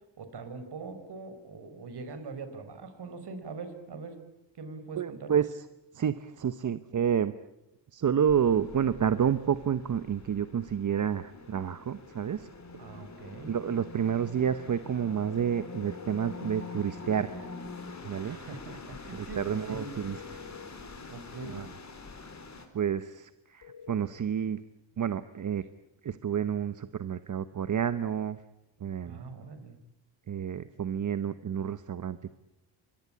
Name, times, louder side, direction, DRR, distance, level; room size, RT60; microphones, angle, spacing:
voice 1, 0.2-4.2 4.5-5.4 12.8-13.5 18.2-19.9 21.1-21.6 29.1-29.8, right 3 dB, 60° right, 9 dB, 4.8 m, -42 dB
voice 2, 5.0-5.6 5.9-7.3 7.9-12.5 13.5-17.4 18.0-18.4 19.1-20.4 21.5-21.7 22.7-24.6 25.0-25.6 26.0-28.4 28.8-29.2 30.3-32.3, right 8 dB, 40° right, 12 dB, 1.0 m, -29 dB
sound 1, 8.3-22.6, left 3 dB, 35° left, 4.4 m, -45 dB
sound 2, 15.1-16.5 19.4-20.8 23.6-24.1, left 7 dB, 50° left, 2.0 m, -48 dB
26.5 x 21.5 x 8.7 m, 0.87 s
cardioid pair, 90°, 45 cm